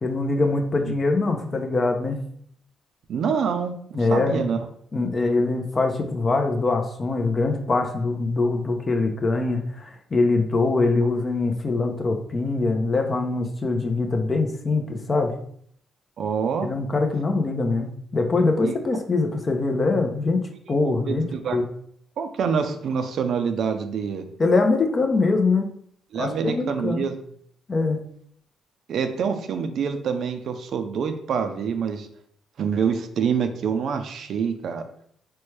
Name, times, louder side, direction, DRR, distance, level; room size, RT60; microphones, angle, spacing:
voice 1, 0.0-2.2 3.9-4.4 4.9-15.3 16.6-20.4 20.7-21.6 24.4-25.7 26.1-27.0 27.7-28.0, left 3 dB, 35° left, 4 dB, 0.6 m, -23 dB
voice 2, 3.1-3.7 4.0-4.7 16.2-16.7 18.6-18.8 20.8-21.6 22.2-24.3 26.1-27.2 28.9-32.1 32.6-34.9, right 6 dB, 65° right, 8 dB, 0.4 m, -26 dB
4.3 x 2.2 x 3.1 m, 0.65 s
cardioid pair, 90°, 0 cm